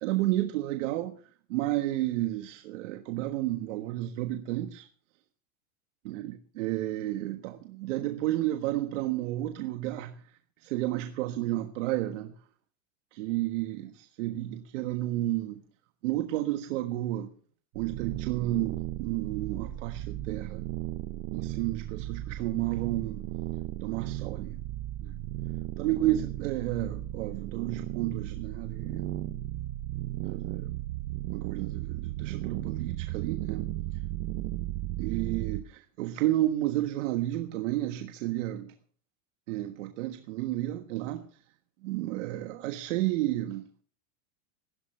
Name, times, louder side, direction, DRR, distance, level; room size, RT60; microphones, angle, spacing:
voice 1, 0.0-1.1 1.5-4.9 6.0-10.1 10.6-12.3 13.1-15.6 16.0-17.3 17.7-20.6 21.3-23.2 23.8-24.6 25.0-25.2 25.8-29.1 30.2-30.7 31.3-33.7 35.0-38.7 39.5-41.2 41.8-43.6, right 15 dB, 60° right, 1.5 m, -31 dB
sound 1, 17.7-35.6, right 16 dB, 40° right, 0.7 m, -35 dB
19.5 x 16.0 x 3.2 m
supercardioid pair, 160°, 42 cm